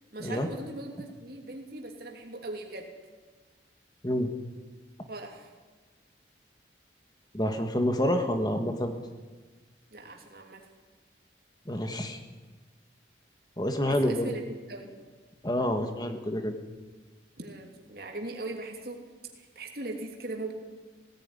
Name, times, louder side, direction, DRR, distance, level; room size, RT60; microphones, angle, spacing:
voice 1, 0.1-2.9 5.1-5.5 9.9-10.7 13.9-14.4 14.7-14.9 17.4-19.0 19.4-20.5, right 2 dB, 55° right, 1 dB, 3.1 m, -39 dB
voice 2, 7.3-8.9 11.6-12.2 13.6-14.3 15.4-16.5, left 1 dB, 20° left, 6 dB, 1.6 m, -28 dB
18.0 x 16.0 x 9.9 m, 1.3 s
head